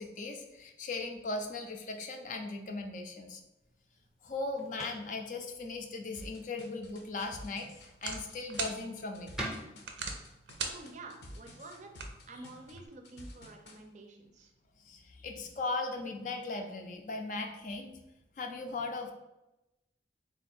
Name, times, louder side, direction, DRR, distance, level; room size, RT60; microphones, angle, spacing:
voice 1, 0.0-3.4 4.2-9.3 14.9-17.9 18.4-19.1, left 3 dB, 45° left, 4 dB, 0.4 m, -38 dB
sound 1, 3.6-12.8, right 1 dB, 5° right, 0.6 m, -49 dB
sound 2, 6.1-13.8, left 1 dB, 80° left, 0.7 m, -50 dB
sound 3, 6.8-12.9, right 5 dB, 90° right, 0.5 m, -44 dB
voice 2, 10.6-14.5, right 2 dB, 40° right, 3 dB, 0.5 m, -49 dB
3.7 x 2.4 x 4.2 m, 0.95 s
head